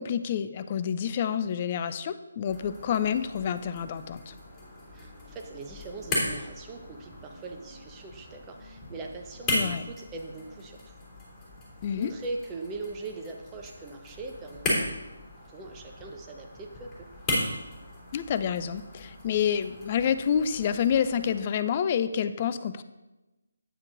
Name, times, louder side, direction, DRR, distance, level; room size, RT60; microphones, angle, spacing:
voice 1, 0.0-4.4 9.5-9.9 11.8-12.1 18.1-22.8, left 8 dB, 30° left, 12 dB, 0.4 m, -28 dB
sound 1, 2.5-21.4, left 1 dB, 10° left, 3.2 m, -37 dB
voice 2, 4.9-11.0 12.0-14.8 15.5-17.1, right 3 dB, 15° right, 2 dB, 0.9 m, -41 dB
9.5 x 8.9 x 2.6 m, 1.0 s
figure-of-eight pair, 150°, 0 cm